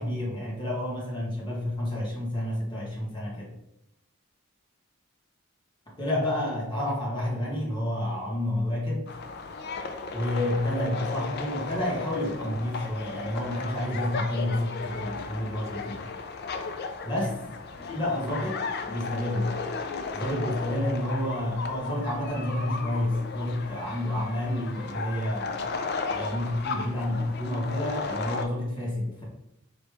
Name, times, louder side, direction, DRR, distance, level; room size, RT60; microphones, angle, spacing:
voice 1, 0.0-3.5 6.0-9.1 10.1-16.1 17.0-17.4 17.8-18.6 18.9-19.6 20.1-25.6 26.1-29.2, left 1 dB, 20° left, -5 dB, 1.4 m, -29 dB
sound 1, 9.1-28.4, left 4 dB, 45° left, 0.4 m, -35 dB
4.9 x 2.9 x 3.4 m, 0.82 s
head